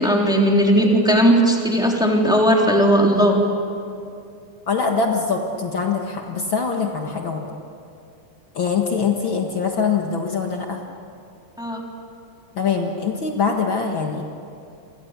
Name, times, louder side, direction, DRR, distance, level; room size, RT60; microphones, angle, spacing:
voice 1, 0.0-3.4 11.6-11.8, equal, ahead, 0 dB, 2.7 m, -17 dB
voice 2, 4.7-7.5 8.5-10.8 12.5-14.2, left 5 dB, 85° left, 2 dB, 1.0 m, -23 dB
30.0 x 24.5 x 8.2 m, 2.5 s
omnidirectional pair, 5.0 m